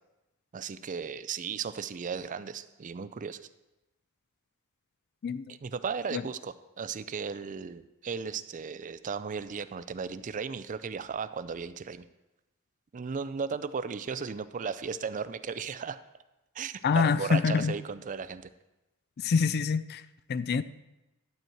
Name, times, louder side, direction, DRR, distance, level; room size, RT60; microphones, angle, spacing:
voice 1, 0.5-3.4 5.6-12.1 12.9-16.0 16.5-18.5, right 6 dB, 35° right, 13 dB, 0.4 m, -35 dB
voice 2, 5.2-5.5 6.1-6.2 16.8-17.8 19.2-20.6, left 5 dB, 45° left, 15 dB, 0.4 m, -26 dB
12.0 x 4.5 x 7.8 m, 0.98 s
head